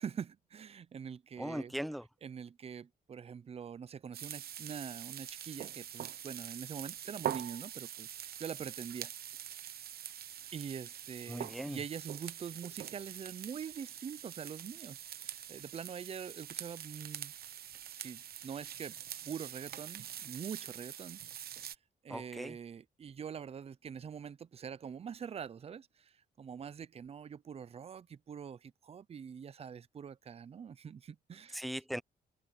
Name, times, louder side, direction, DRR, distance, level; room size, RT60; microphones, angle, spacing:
voice 1, 0.0-1.7 2.2-9.1 9.4-9.5 10.5-17.3 18.0-19.0 19.3-21.7 22.0-31.7, right 7 dB, 40° right, 0.5 m, -44 dB
voice 2, 1.4-2.1 11.3-11.8 22.1-22.6 31.5-32.0, equal, ahead, 0.8 m, -39 dB
sound 1, 4.1-21.7, right 10 dB, 75° right, 0.9 m, -44 dB
wide cardioid pair, 130°, 16 cm